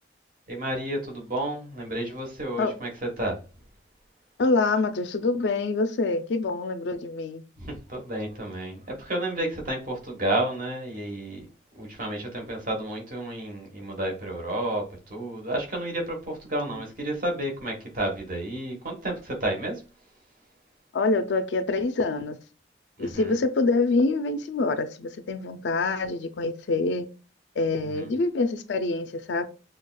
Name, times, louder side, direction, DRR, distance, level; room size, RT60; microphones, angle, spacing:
voice 1, 0.5-2.9 3.2-3.4 7.6-11.4 11.7-19.8 23.0-23.4 27.8-28.1, right 1 dB, 45° right, 1.1 m, -31 dB
voice 2, 4.4-7.4 20.9-22.4 23.0-27.1 27.6-29.4, left 3 dB, 70° left, 0.4 m, -25 dB
6.2 x 2.3 x 2.3 m
head